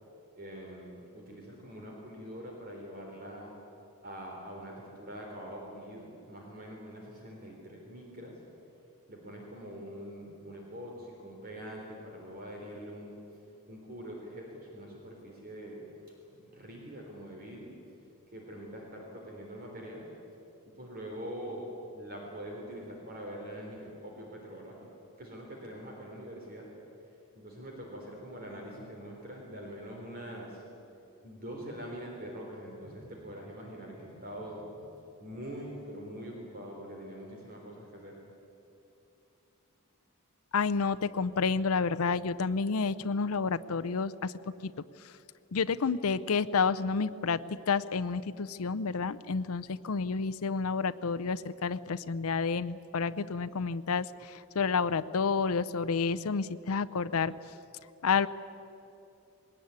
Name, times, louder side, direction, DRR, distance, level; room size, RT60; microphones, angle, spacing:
voice 1, 0.4-3.5 4.0-8.4 9.1-13.2 13.7-15.8 16.3-17.7 18.3-20.1 20.8-24.9 25.2-26.7 27.3-30.6 31.2-34.7 35.2-38.2, equal, 40° right, -1 dB, 3.7 m, -44 dB
voice 2, 40.5-44.3 44.6-44.7 45.5-57.3 58.0-58.3, left 5 dB, 75° left, 12 dB, 0.6 m, -30 dB
20.5 x 19.0 x 9.5 m, 2.8 s
head